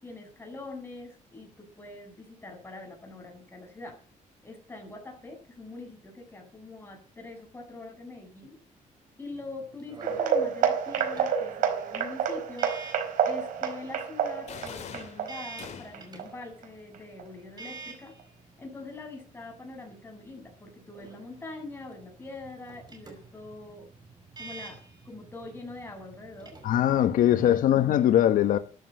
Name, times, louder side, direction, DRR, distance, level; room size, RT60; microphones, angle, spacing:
voice 1, 0.0-4.0 4.4-8.6 9.2-12.7 13.2-18.2 18.6-23.9 24.4-26.6 27.3-27.8, left 2 dB, 15° left, 8.0 m, -43 dB
sound 1, 9.3-27.9, right 4 dB, 30° right, 5.6 m, -50 dB
sound 2, 10.0-16.6 16.9-17.2 17.6-17.7 18.2-18.3, right 7 dB, 75° right, 4.6 m, -29 dB
sound 3, 14.5-16.2, left 7 dB, 55° left, 3.0 m, -43 dB
voice 2, 26.6-28.6, left 11 dB, 85° left, 1.4 m, -21 dB
13.5 x 12.0 x 7.9 m
cardioid pair, 140°, 14 cm